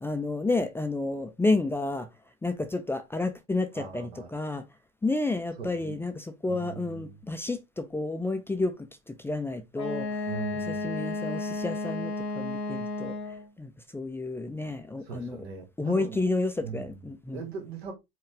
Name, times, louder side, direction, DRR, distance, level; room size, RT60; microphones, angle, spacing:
voice 1, 0.0-2.1 2.4-4.6 5.0-10.3 10.7-13.1 13.6-15.4 15.8-17.4, left 2 dB, 5° left, 0.5 m, -30 dB
voice 2, 3.7-4.3 5.6-6.0 6.4-7.2 10.3-11.0 15.0-16.2 16.6-17.0 17.3-17.9, right 6 dB, 80° right, 1.8 m, -40 dB
Wind instrument woodwind instrument, 9.7-13.5, left 2 dB, 90° left, 1.2 m, -33 dB
4.8 x 2.3 x 3.2 m
hypercardioid pair, 90°, 31 cm